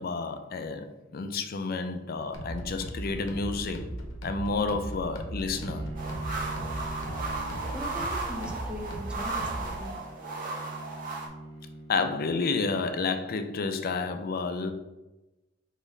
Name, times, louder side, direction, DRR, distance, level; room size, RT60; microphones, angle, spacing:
voice 1, 0.0-3.9 4.2-5.8 11.9-14.7, left 4 dB, 50° left, 8 dB, 0.4 m, -30 dB
sound 1, 2.3-9.8, equal, 90° left, 0.7 m, -38 dB
Bowed string instrument, 5.5-12.6, right 2 dB, 75° right, 0.7 m, -43 dB
sound 2, 6.0-11.3, right 3 dB, 45° right, 0.9 m, -35 dB
voice 2, 7.7-9.9, equal, 5° right, 2 dB, 0.5 m, -40 dB
4.0 x 3.0 x 3.9 m, 1.0 s
head